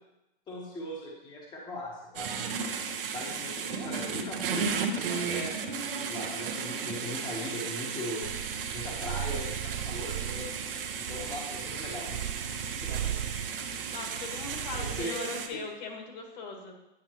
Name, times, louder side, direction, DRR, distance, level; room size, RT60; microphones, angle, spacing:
voice 1, 0.5-2.7 3.1-4.7 5.0-8.3 8.7-10.6 10.9-12.2 12.7-13.2 14.7-15.2 15.5-15.6, left 1 dB, 15° left, -3 dB, 1.1 m, -39 dB
sound 1, 2.2-15.5, right 6 dB, 70° right, 1.0 m, -35 dB
Purr, 8.2-15.2, right 11 dB, 85° right, 0.5 m, -38 dB
voice 2, 13.9-16.7, left 3 dB, 45° left, 3 dB, 1.6 m, -39 dB
9.7 x 5.7 x 3.1 m, 0.94 s
hypercardioid pair, 140°, 29 cm